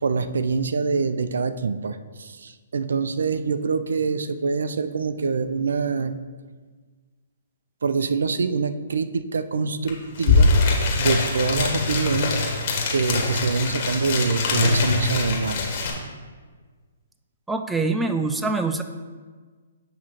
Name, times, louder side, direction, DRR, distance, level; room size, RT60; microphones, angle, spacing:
voice 1, 0.0-6.1 7.8-10.6 11.0-12.4 12.9-15.7, right 4 dB, 75° right, 12 dB, 0.4 m, -25 dB
sound 1, 9.9-10.0 10.1-15.9, left 3 dB, 45° left, 1.6 m, -22 dB
voice 2, 17.5-18.8, right 3 dB, 5° right, 6 dB, 0.4 m, -24 dB
8.5 x 3.0 x 5.8 m, 1.5 s
hypercardioid pair, 140°, 0 cm